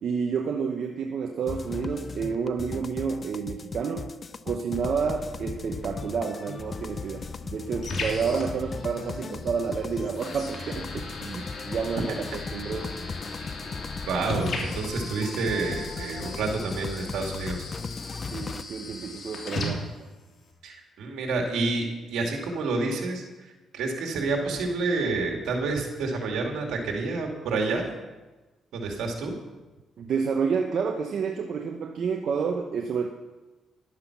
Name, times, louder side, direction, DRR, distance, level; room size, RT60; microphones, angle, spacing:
voice 1, 0.0-4.1 4.4-12.9 18.2-20.1 30.0-33.1, right 6 dB, 60° right, 3 dB, 0.9 m, -30 dB
sound 1, 1.5-18.6, left 5 dB, 40° left, 0.5 m, -37 dB
sound 2, 6.5-20.5, left 2 dB, 55° left, 3.0 m, -38 dB
voice 2, 14.1-17.6 20.6-27.9 28.7-29.3, right 3 dB, 80° right, 2 dB, 2.5 m, -29 dB
12.0 x 9.7 x 6.0 m, 1.2 s
cardioid pair, 90°, 0 cm